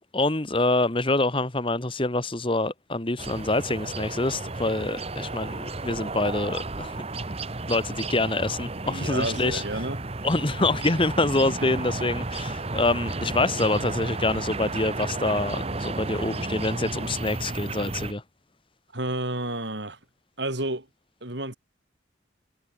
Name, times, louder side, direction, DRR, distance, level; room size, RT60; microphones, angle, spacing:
voice 1, 0.1-7.0 7.7-9.6 10.2-18.2, left 2 dB, 30° left, 1.5 m, -26 dB
sound 1, 3.2-18.1, right 2 dB, 30° right, 1.2 m, -33 dB
voice 2, 8.9-10.0 18.9-20.0 20.4-20.9 21.2-21.6, right 2 dB, 65° right, 5.1 m, -30 dB
head